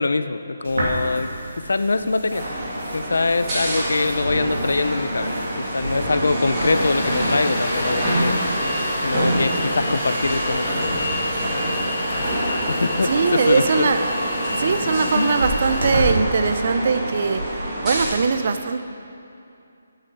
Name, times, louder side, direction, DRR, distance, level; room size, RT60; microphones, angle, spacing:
voice 1, 0.0-1.3 1.7-2.5 2.9-8.4 9.0-11.0 12.7-13.9 15.1-15.3, left 3 dB, 85° left, 11 dB, 0.5 m, -23 dB
sound 1, 0.6-16.1, right 1 dB, 70° right, 2.7 m, -34 dB
sound 2, 2.3-18.0, equal, 20° right, 2.5 m, -26 dB
sound 3, 6.7-15.9, left 2 dB, 30° left, 1.7 m, -30 dB
voice 2, 13.1-14.1 14.5-17.4 17.8-18.8, right 5 dB, 40° right, 9 dB, 0.5 m, -21 dB
8.3 x 6.4 x 8.0 m, 2.6 s
hypercardioid pair, 170°, 0 cm